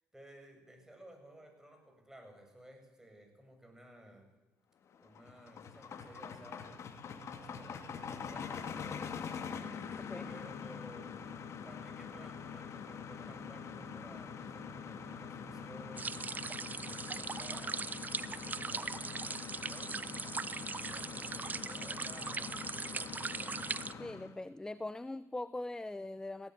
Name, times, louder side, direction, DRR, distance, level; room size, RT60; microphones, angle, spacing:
voice 1, 0.1-4.3 5.0-6.8 7.1-9.4 10.3-11.2 11.6-16.2 16.8-24.0, right 1 dB, 10° right, 4 dB, 7.0 m, -56 dB
sound 1, 4.9-24.3, left 6 dB, 50° left, 2.5 m, -44 dB
sound 2, 7.5-23.6, right 2 dB, 65° right, 7.2 m, -60 dB
voice 2, 10.0-10.3 24.0-26.5, left 2 dB, 10° left, 16 dB, 0.7 m, -41 dB
sound 3, 16.0-23.9, right 4 dB, 30° right, 0.8 m, -40 dB
18.0 x 16.5 x 9.5 m, 1.1 s
supercardioid pair, 75°, 6 cm